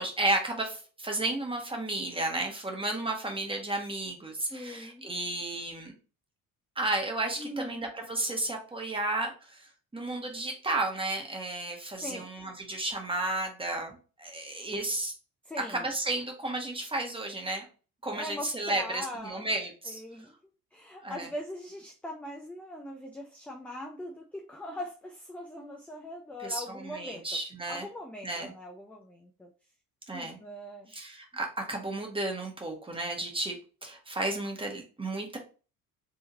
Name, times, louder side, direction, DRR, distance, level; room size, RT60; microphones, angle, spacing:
voice 1, 0.0-5.9 6.8-15.1 15.7-17.7 18.0-20.0 21.0-21.3 26.4-27.9 28.2-28.5 30.1-30.4 30.9-33.6 33.8-35.4, right 2 dB, 10° right, 1 dB, 1.2 m, -33 dB
voice 2, 4.5-5.1 7.4-7.9 12.0-12.3 14.5-14.6 15.4-15.9 18.1-19.5 19.8-20.3 20.7-27.2 27.7-29.5 30.1-30.9, left 1 dB, 5° left, 1 dB, 0.3 m, -41 dB
3.4 x 2.9 x 3.9 m, 0.36 s
figure-of-eight pair, 50°, 44 cm